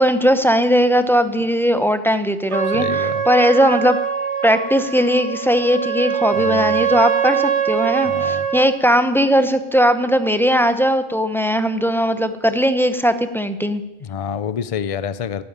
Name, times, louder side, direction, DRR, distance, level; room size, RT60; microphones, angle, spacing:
voice 1, 0.0-4.0 4.4-13.8, equal, ahead, 9 dB, 0.8 m, -18 dB
Trumpet, 2.5-8.7, right 8 dB, 75° right, 2.0 m, -22 dB
voice 2, 2.7-3.3 6.4-7.0 8.0-8.5 14.0-15.4, left 7 dB, 40° left, 14 dB, 0.6 m, -28 dB
12.0 x 10.5 x 9.7 m, 1.0 s
omnidirectional pair, 1.1 m